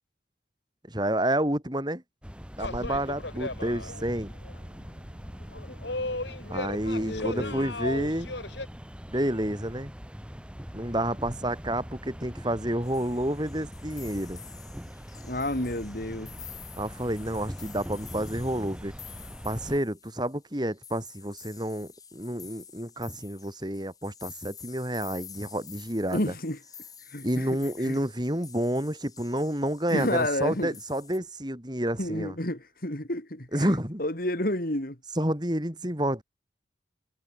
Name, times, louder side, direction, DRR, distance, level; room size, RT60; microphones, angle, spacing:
voice 1, 0.9-2.0 2.6-4.3 6.5-8.3 9.1-9.9 10.7-14.4 16.8-18.9 19.4-26.3 27.2-32.3 33.5-34.0 35.2-36.2, right 1 dB, 25° right, 5.1 m, -29 dB
sound 1, 2.2-19.8, equal, 5° right, 3.7 m, -42 dB
sound 2, 2.6-4.2 4.4-4.6 5.4-8.7, left 2 dB, 75° left, 4.9 m, -36 dB
voice 2, 7.0-7.7 15.2-16.4 26.1-26.6 27.1-28.0 29.9-30.8 32.0-33.7 34.0-35.0, left 1 dB, 50° left, 3.5 m, -30 dB
sound 3, 12.8-31.2, left 7 dB, 20° left, 5.3 m, -49 dB
head